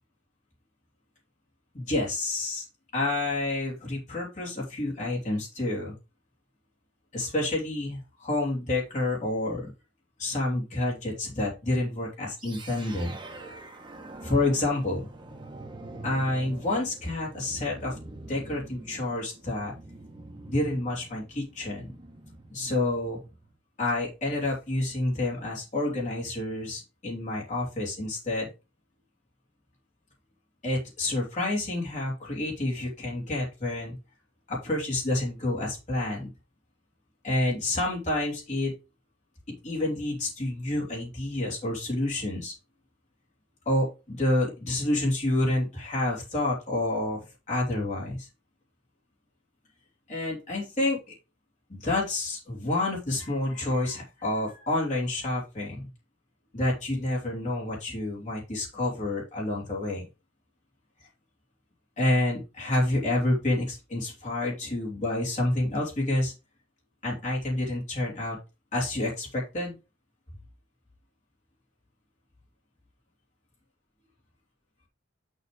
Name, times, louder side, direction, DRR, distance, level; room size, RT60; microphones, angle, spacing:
voice 1, 1.7-2.6 2.9-5.9 7.1-9.7 10.2-13.7 14.2-15.1 16.0-18.0 18.3-19.7 20.5-21.9 22.5-23.2 23.8-28.5 30.6-34.0 34.5-36.3 37.2-38.7 39.6-42.5 43.6-48.3 50.1-51.1 51.7-55.9 56.5-60.1 62.0-66.3 67.0-68.4 68.7-69.8, left 2 dB, 40° left, -4 dB, 3.0 m, -29 dB
sound 1, 12.4-23.5, right 2 dB, 25° right, 1.3 m, -45 dB
6.7 x 4.1 x 5.0 m, 0.28 s
head